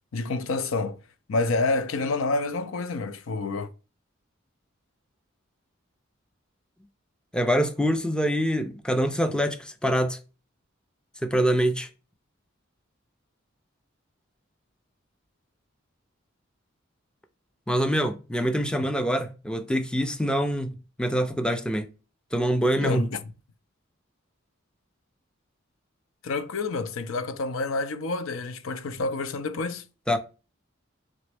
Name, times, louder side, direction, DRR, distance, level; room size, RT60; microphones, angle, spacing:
voice 1, 0.1-1.0 1.3-3.7 22.8-23.3 26.2-29.8, left 3 dB, 85° left, 0.6 m, -28 dB
voice 2, 7.3-10.2 11.2-11.9 17.7-21.9 22.3-23.1 30.1-30.2, equal, 5° left, 0.4 m, -25 dB
3.9 x 3.3 x 3.3 m
head